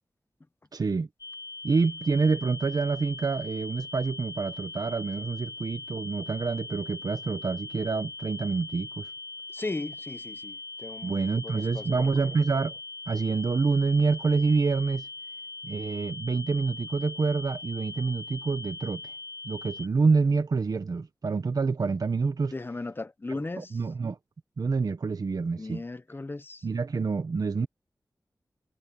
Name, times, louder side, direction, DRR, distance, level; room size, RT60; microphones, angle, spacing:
voice 1, 0.7-1.1 1.6-9.1 11.0-12.8 13.1-15.1 15.6-19.0 19.4-22.5 23.6-24.2 24.6-25.8 26.6-27.7, right 4 dB, 65° right, 1.3 m, -27 dB
sound 1, 1.2-19.9, left 3 dB, 80° left, 2.2 m, -41 dB
voice 2, 9.5-12.3 22.5-23.8 25.6-26.7 27.6-27.7, left 2 dB, 30° left, 0.9 m, -37 dB
wide cardioid pair, 75°, 7 cm